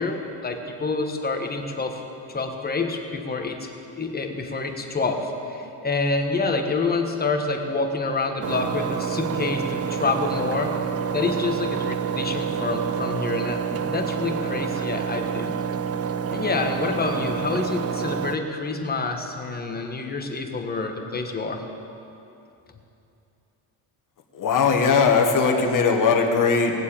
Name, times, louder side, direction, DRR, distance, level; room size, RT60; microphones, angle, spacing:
voice 1, 0.0-2.0 2.3-3.7 4.0-10.7 11.1-15.5 16.3-21.6, left 3 dB, 20° left, 4 dB, 1.3 m, -27 dB
Engine, 8.4-18.4, right 7 dB, 35° right, 0.5 m, -28 dB
voice 2, 24.3-26.7, left 5 dB, 40° left, 2 dB, 1.5 m, -19 dB
18.0 x 7.3 x 8.7 m, 2.8 s
cardioid pair, 145°, 47 cm